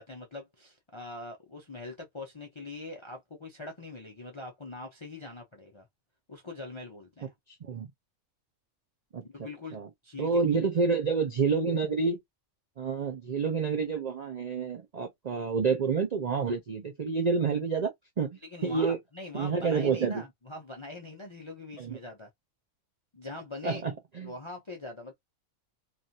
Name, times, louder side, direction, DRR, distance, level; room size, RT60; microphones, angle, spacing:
voice 1, 0.0-5.9 6.3-7.3 9.3-10.3 18.4-22.3 23.1-23.8 24.2-25.1, left 2 dB, 40° left, 0.4 m, -43 dB
voice 2, 7.5-7.9 9.1-9.2 9.7-9.9 10.2-12.2 12.8-17.9 18.2-19.0 19.3-20.2 21.8-22.0 23.6-24.3, right 5 dB, 55° right, 0.4 m, -28 dB
3.1 x 2.4 x 2.6 m
omnidirectional pair, 1.4 m